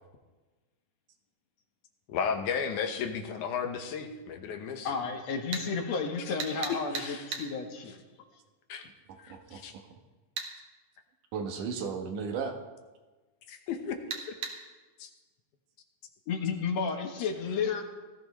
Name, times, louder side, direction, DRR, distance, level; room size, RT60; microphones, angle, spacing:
voice 1, 2.1-4.9 6.7-7.2 8.7-8.9 9.2-9.7 13.5-14.0 14.3-14.4 15.0-15.1, left 6 dB, 80° left, 5 dB, 2.6 m, -34 dB
voice 2, 4.8-8.0 16.3-17.8, left 5 dB, 65° left, 4 dB, 2.2 m, -32 dB
sound 1, 5.5-5.7 6.4-7.5 10.4-10.5 14.1-14.6, right 5 dB, 70° right, 2.8 m, -35 dB
voice 3, 9.3-10.0 11.3-12.6, right 5 dB, 90° right, 4 dB, 2.8 m, -35 dB
18.0 x 14.0 x 3.2 m, 1.3 s
omnidirectional pair, 3.6 m